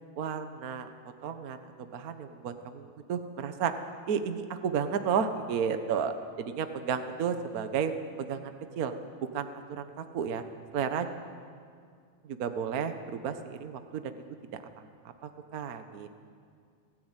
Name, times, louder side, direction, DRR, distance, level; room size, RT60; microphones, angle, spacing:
voice 1, 0.2-0.9 1.2-3.7 4.1-6.1 6.4-7.9 8.2-8.9 9.2-10.4 10.7-11.1 12.2-14.1 14.8-14.9 15.2-16.1, right 7 dB, 90° right, 8 dB, 0.8 m, -32 dB
18.5 x 17.0 x 9.1 m, 2.1 s
omnidirectional pair, 3.4 m